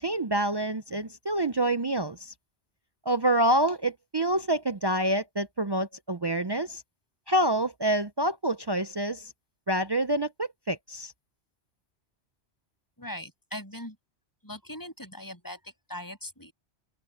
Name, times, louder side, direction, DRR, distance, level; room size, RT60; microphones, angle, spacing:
voice 1, 0.0-2.3 3.1-6.8 7.3-9.3 9.7-11.1, right 1 dB, 35° right, 0.4 m, -27 dB
voice 2, 13.0-14.0 14.4-16.5, left 1 dB, 15° left, 7.0 m, -40 dB
omnidirectional pair, 1.2 m